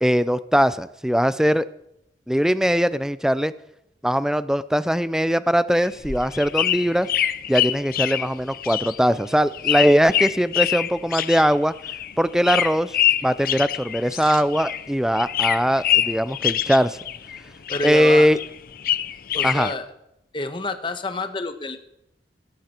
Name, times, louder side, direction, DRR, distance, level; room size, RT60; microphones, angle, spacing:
voice 1, 0.0-1.6 2.3-3.5 4.0-7.1 7.5-11.7 12.2-13.0 13.2-17.0 17.8-18.4 19.4-19.7, equal, 5° right, 15 dB, 0.5 m, -20 dB
sound 1, 5.8-14.9 15.1-17.4 17.7-19.7, left 11 dB, 50° left, 0.7 m, -25 dB
voice 2, 17.7-18.3 19.3-19.9 20.3-21.8, left 2 dB, 25° left, 8 dB, 1.3 m, -28 dB
17.5 x 17.5 x 4.5 m, 0.82 s
head